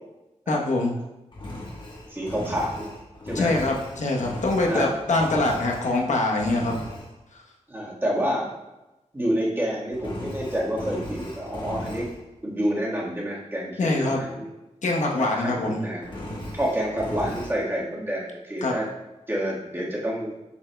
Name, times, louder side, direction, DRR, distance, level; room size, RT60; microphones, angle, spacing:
voice 1, 0.5-1.0 3.3-6.8 13.8-14.2 14.8-15.8 18.6-18.8, left 2 dB, 80° left, 0 dB, 1.1 m, -24 dB
Engine, 1.3-6.0 6.4-7.1 9.9-12.2 16.0-17.6, left 1 dB, 40° left, 1.3 m, -37 dB
voice 2, 2.1-2.9 3.2-3.5 4.7-5.0 7.7-8.5 9.1-12.1 12.4-14.5 15.2-16.0 16.5-18.9 19.3-20.3, equal, 20° right, -5 dB, 1.6 m, -28 dB
7.0 x 6.9 x 2.3 m, 1.0 s
wide cardioid pair, 140°, 12 cm